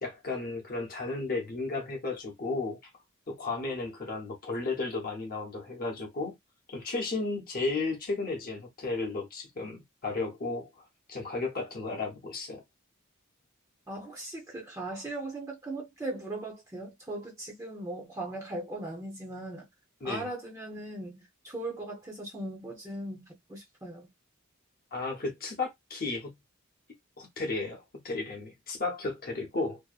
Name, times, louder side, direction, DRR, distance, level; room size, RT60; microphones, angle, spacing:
voice 1, 0.0-2.8 3.3-6.3 6.7-10.7 11.1-12.6 20.0-20.3 24.9-26.4 27.2-29.8, left 3 dB, 45° left, 0.8 m, -34 dB
voice 2, 13.9-19.7 20.0-24.1, right 2 dB, 15° right, 0.7 m, -39 dB
2.7 x 2.1 x 2.3 m
head